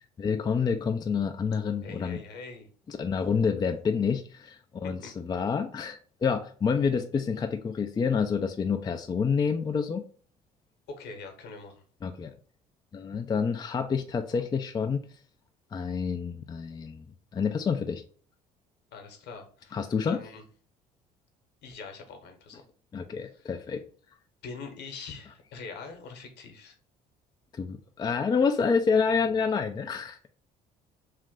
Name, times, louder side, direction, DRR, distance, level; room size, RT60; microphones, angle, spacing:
voice 1, 0.0-2.2 2.9-10.0 12.0-12.3 12.9-15.0 15.7-17.1 17.3-18.0 19.7-20.2 22.9-23.8 27.5-30.2, left 5 dB, 20° left, 6 dB, 0.3 m, -28 dB
voice 2, 1.8-2.7 4.8-5.1 10.9-11.8 18.9-20.4 21.6-22.6 23.2-23.5 24.4-26.7, left 4 dB, 60° left, 5 dB, 1.0 m, -43 dB
3.2 x 2.5 x 3.6 m, 0.43 s
hypercardioid pair, 60°, 20 cm